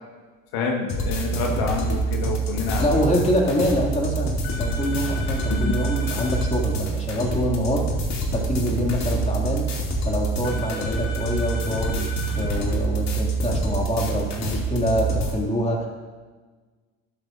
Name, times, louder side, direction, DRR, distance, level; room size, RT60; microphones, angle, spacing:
voice 1, 0.5-2.8 5.5-5.7, left 4 dB, 65° left, 1 dB, 1.7 m, -27 dB
sound 1, 0.9-15.3, right 3 dB, 40° left, 2.5 m, -26 dB
voice 2, 2.8-9.7 10.0-12.1 12.3-15.9, left 1 dB, 15° left, -1 dB, 2.5 m, -25 dB
sound 2, 4.4-6.5 10.4-12.5, left 5 dB, 85° left, 1.5 m, -37 dB
12.5 x 12.0 x 2.6 m, 1.4 s
hypercardioid pair, 75°, 41 cm